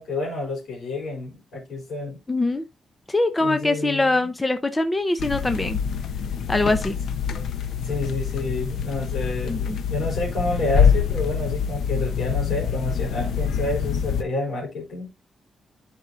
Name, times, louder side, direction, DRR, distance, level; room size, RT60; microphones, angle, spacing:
voice 1, 0.0-2.2 3.4-4.3 7.8-15.1, left 2 dB, 55° left, 3.8 m, -29 dB
voice 2, 2.3-2.6 3.1-5.8 6.5-7.0 9.5-9.8, left 2 dB, 15° left, 0.8 m, -23 dB
sound 1, 5.2-14.2, left 7 dB, 75° left, 1.0 m, -25 dB
11.0 x 5.3 x 2.7 m
wide cardioid pair, 160°, 0 cm